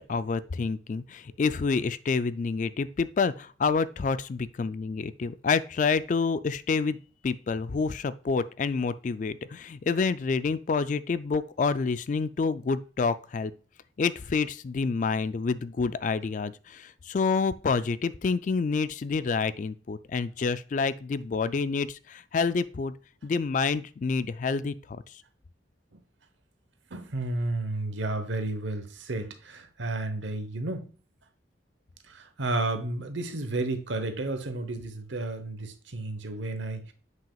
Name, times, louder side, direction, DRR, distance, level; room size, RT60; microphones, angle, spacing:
voice 1, 0.1-7.0 7.2-13.5 14.0-22.9 23.2-25.0, left 4 dB, 40° left, 0.3 m, -28 dB
voice 2, 26.9-30.9 32.0-36.9, right 2 dB, 80° right, 1.0 m, -32 dB
7.6 x 6.0 x 2.3 m
head